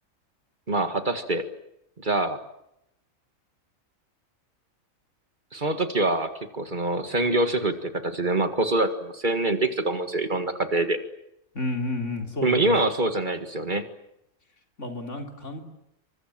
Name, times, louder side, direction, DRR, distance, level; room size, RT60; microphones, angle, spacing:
voice 1, 0.7-1.5 2.0-2.4 5.5-11.0 12.4-13.9, right 2 dB, 35° right, 8 dB, 2.0 m, -25 dB
voice 2, 11.5-12.8 14.8-15.6, left 2 dB, 60° left, 3 dB, 3.9 m, -31 dB
28.0 x 24.0 x 7.7 m, 0.82 s
omnidirectional pair, 1.4 m